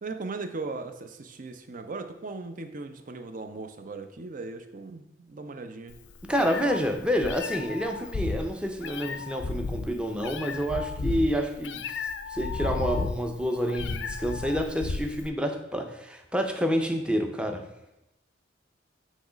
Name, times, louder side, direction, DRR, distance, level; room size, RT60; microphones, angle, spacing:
voice 1, 0.0-6.0 6.4-6.5, right 3 dB, 45° right, 7 dB, 0.6 m, -38 dB
Meow, 5.9-15.3, left 4 dB, 70° left, 0.5 m, -33 dB
voice 2, 6.2-12.0 12.3-17.7, equal, 5° right, 5 dB, 0.6 m, -28 dB
8.4 x 3.1 x 5.0 m, 0.92 s
head